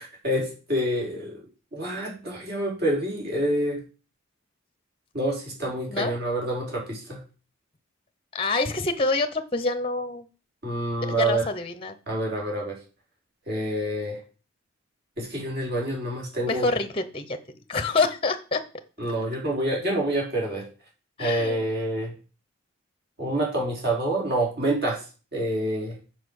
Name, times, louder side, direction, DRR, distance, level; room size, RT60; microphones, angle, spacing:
voice 1, 0.2-1.4 1.7-3.8 5.1-7.2 10.6-11.4 12.1-12.8 13.5-14.2 15.2-16.7 19.0-20.7 21.2-22.1 23.2-25.1 25.3-26.0, right 1 dB, 45° right, -2 dB, 4.2 m, -27 dB
voice 2, 8.3-10.3 11.0-12.0 16.5-17.4 17.7-18.6 21.2-21.6, left 3 dB, 25° left, 9 dB, 0.8 m, -26 dB
7.5 x 6.5 x 6.4 m, 0.35 s
head